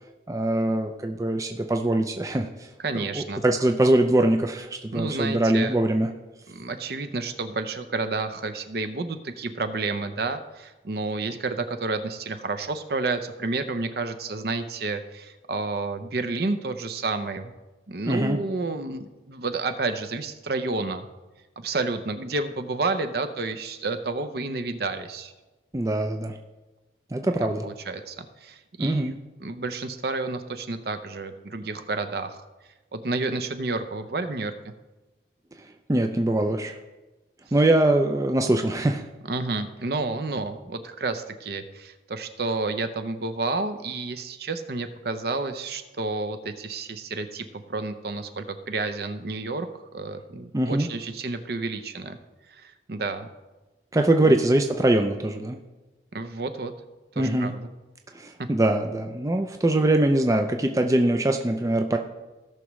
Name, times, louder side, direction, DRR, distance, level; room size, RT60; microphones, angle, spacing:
voice 1, 0.3-2.5 2.9-6.1 18.1-18.4 25.7-26.3 27.1-27.7 28.8-29.1 35.9-36.8 37.5-39.0 50.5-50.9 53.9-55.6 57.2-57.5 58.1-62.0, right 1 dB, 15° right, 5 dB, 0.4 m, -22 dB
voice 2, 2.8-3.4 4.9-5.8 6.5-17.5 17.9-21.1 21.6-25.3 27.6-32.4 32.9-34.5 39.3-49.7 49.9-52.2 52.5-53.3 54.3-54.4 56.1-56.7 57.2-57.7, right 3 dB, 55° right, 9 dB, 0.7 m, -30 dB
17.0 x 6.0 x 3.1 m, 1.1 s
head